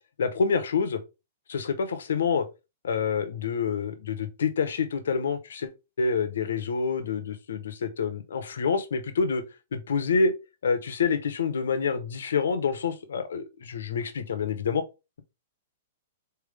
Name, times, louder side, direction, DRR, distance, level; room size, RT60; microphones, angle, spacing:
voice 1, 0.2-1.0 1.5-2.5 2.8-5.7 6.0-9.4 9.7-10.3 10.6-14.8, left 5 dB, 90° left, 1.1 m, -27 dB
4.2 x 3.6 x 3.4 m
hypercardioid pair, 165°, 0 cm